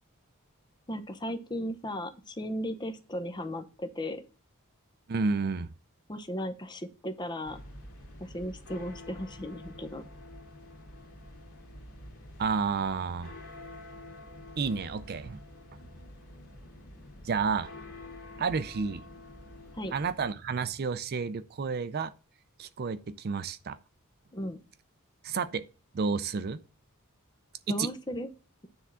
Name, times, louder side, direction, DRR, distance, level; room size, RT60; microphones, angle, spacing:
voice 1, 0.9-4.2 6.1-7.6 8.2-10.1 19.7-19.9 24.3-24.6 27.7-28.3, equal, 20° left, 0.8 m, -36 dB
voice 2, 5.1-5.7 12.4-13.3 14.6-15.4 17.2-17.7 18.4-19.0 19.9-22.1 22.6-23.8 25.2-25.7 25.9-26.6 27.7-27.9, right 5 dB, 45° right, 0.4 m, -30 dB
sound 1, 7.4-20.3, left 1 dB, 80° left, 2.2 m, -48 dB
9.6 x 3.6 x 5.6 m
head